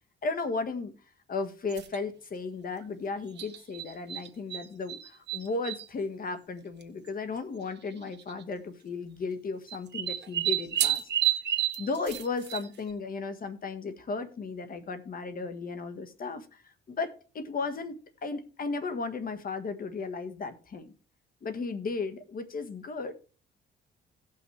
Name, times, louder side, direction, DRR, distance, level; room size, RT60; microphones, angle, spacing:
voice 1, 0.2-0.9 1.3-11.0 11.8-20.9 21.4-23.1, left 4 dB, 45° left, 9 dB, 1.6 m, -35 dB
sound 1, 1.7-2.0 3.4-4.6 4.9-5.9 6.8-6.9 7.1-7.2 8.1-8.4 9.7-12.9, right 12 dB, 60° right, 1.3 m, -30 dB
17.0 x 5.9 x 3.3 m, 0.36 s
cardioid pair, 90°, 20 cm